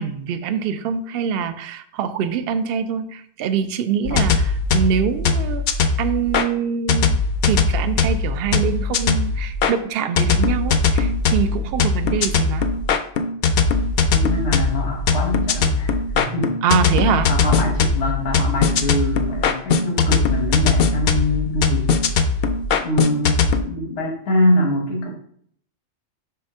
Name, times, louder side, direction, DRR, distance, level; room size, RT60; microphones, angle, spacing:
voice 1, 0.0-5.6 6.0-7.1 7.4-12.7 16.6-17.3, right 7 dB, 65° right, 10 dB, 0.7 m, -24 dB
sound 1, 4.0-6.5 6.9-9.7 10.2-23.6, left 4 dB, 65° left, 0.7 m, -20 dB
voice 2, 14.1-16.5 17.1-21.9 22.8-25.1, left 1 dB, 85° left, 1 dB, 1.4 m, -24 dB
5.7 x 3.4 x 5.3 m, 0.64 s
omnidirectional pair, 1.2 m